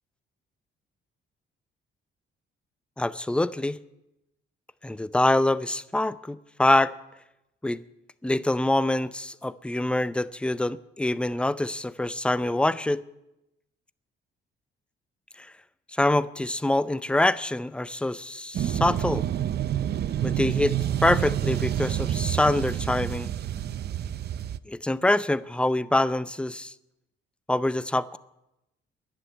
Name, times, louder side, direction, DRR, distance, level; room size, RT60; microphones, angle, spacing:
voice 1, 3.0-3.8 4.8-6.9 7.6-7.8 8.2-13.0 15.4-15.5 15.9-19.2 20.2-20.7 21.0-23.3 24.7-26.7 27.5-28.2, left 1 dB, 5° left, 16 dB, 0.5 m, -25 dB
sound 1, 18.5-24.6, right 11 dB, 55° right, 0.6 m, -28 dB
11.5 x 10.0 x 9.7 m, 0.90 s
cardioid pair, 90°, 20 cm